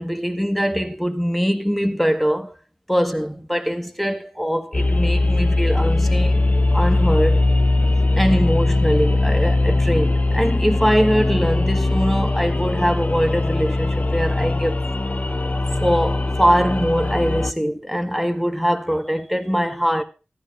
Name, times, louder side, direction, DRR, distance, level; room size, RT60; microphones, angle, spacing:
voice 1, 0.0-2.5 2.9-6.4 6.7-7.5 8.1-14.8 15.8-20.0, equal, 5° left, 1.6 m, -22 dB
sound 1, 4.7-17.5, left 2 dB, 45° left, 0.6 m, -20 dB
14.0 x 13.0 x 2.6 m
wide cardioid pair, 45°, 4 cm